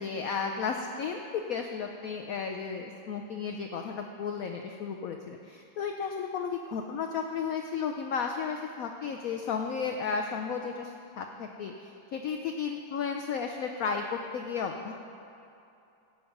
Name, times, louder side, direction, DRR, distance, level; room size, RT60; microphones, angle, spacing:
voice 1, 0.0-14.9, left 6 dB, 80° left, 3 dB, 0.7 m, -34 dB
16.0 x 5.4 x 5.8 m, 2.8 s
omnidirectional pair, 2.1 m